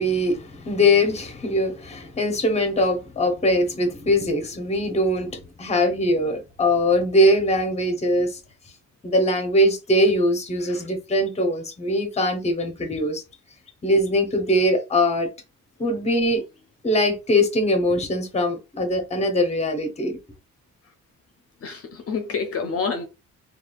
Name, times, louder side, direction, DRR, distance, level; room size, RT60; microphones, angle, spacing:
voice 1, 0.0-8.4 9.0-13.2 13.8-15.3 15.8-16.4 16.8-20.2, left 1 dB, 20° left, 0.8 m, -22 dB
voice 2, 21.6-23.1, left 5 dB, 50° left, 0.6 m, -28 dB
3.2 x 2.4 x 2.3 m
cardioid pair, 90°, 30 cm